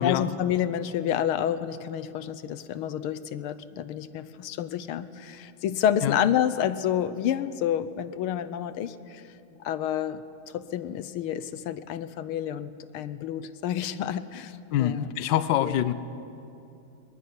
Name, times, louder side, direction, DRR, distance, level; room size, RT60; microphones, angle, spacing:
voice 1, 0.0-9.2 9.6-10.2 10.5-15.0 15.6-15.8, left 10 dB, 85° left, 14 dB, 1.7 m, -29 dB
voice 2, 14.7-15.9, left 11 dB, 65° left, 14 dB, 1.4 m, -25 dB
21.5 x 21.0 x 9.7 m, 2.7 s
omnidirectional pair, 2.3 m